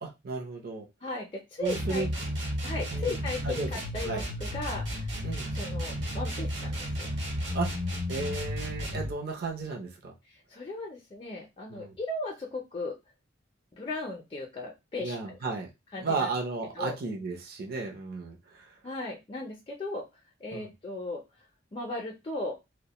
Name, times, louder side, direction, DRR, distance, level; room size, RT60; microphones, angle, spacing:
voice 1, 0.0-0.9 1.6-2.1 2.9-3.1 3.4-3.7 4.0-4.2 5.2-5.5 7.5-7.7 8.1-10.1 11.7-12.0 15.0-15.7 16.0-18.7 20.5-20.7, right 3 dB, 55° right, 0 dB, 0.6 m, -34 dB
voice 2, 1.0-2.1 2.6-5.1 5.5-7.1 10.3-13.0 13.7-15.5 15.9-16.3 16.7-16.9 18.8-20.1 20.4-21.2 21.7-22.6, left 2 dB, 30° left, -1 dB, 0.4 m, -36 dB
sound 1, 1.6-9.1, equal, 75° right, 1.0 m, -33 dB
2.4 x 2.1 x 2.9 m, 0.23 s
head